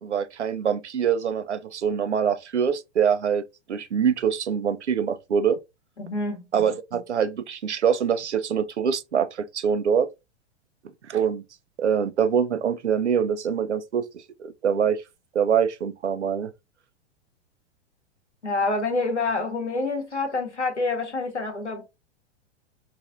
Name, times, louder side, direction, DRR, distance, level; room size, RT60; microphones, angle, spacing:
voice 1, 0.0-3.4 3.7-5.6 6.5-10.1 11.0-11.4 11.8-14.1 14.4-15.0 15.3-16.5, right 7 dB, 80° right, 0.6 m, -24 dB
voice 2, 6.0-6.5 18.4-21.8, left 3 dB, 90° left, 1.4 m, -27 dB
4.1 x 3.1 x 2.5 m
figure-of-eight pair, 100°, 34 cm